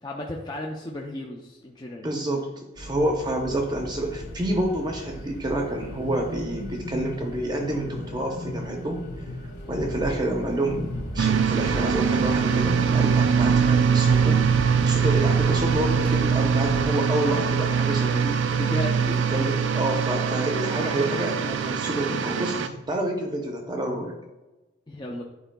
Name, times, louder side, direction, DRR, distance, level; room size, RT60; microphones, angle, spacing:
voice 1, 0.0-2.1 18.5-18.9 24.9-25.2, left 1 dB, 20° left, -1 dB, 0.5 m, -34 dB
voice 2, 2.0-9.0 9.7-10.9 11.1-14.4 14.9-18.4 19.0-24.1, right 1 dB, 20° right, 2 dB, 0.7 m, -28 dB
sound 1, 2.7-16.9, equal, 65° left, 1.9 m, -37 dB
sound 2, 6.0-19.7 20.1-23.0, left 1 dB, 85° left, 1.7 m, -40 dB
sound 3, 11.2-22.7, right 6 dB, 75° right, 0.4 m, -23 dB
10.5 x 4.5 x 2.3 m, 1.1 s
head